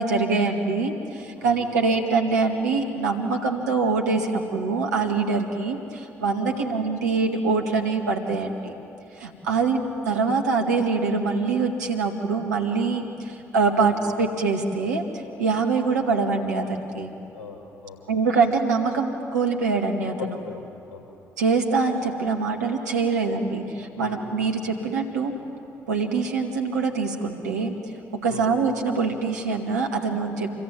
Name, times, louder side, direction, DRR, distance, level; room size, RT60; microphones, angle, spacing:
voice 1, 0.0-8.7 9.1-17.1 18.1-20.1 21.4-25.4 25.9-27.7 28.1-30.6, right 4 dB, 85° right, 2 dB, 2.1 m, -24 dB
voice 2, 1.4-1.7 6.5-6.6 9.5-9.6 13.8-14.2 17.3-18.0 20.2-20.6 20.9-21.1 23.9-24.5 28.3-28.5, left 5 dB, 75° left, 2 dB, 4.9 m, -40 dB
27.0 x 22.5 x 9.4 m, 2.7 s
figure-of-eight pair, 45°, 9 cm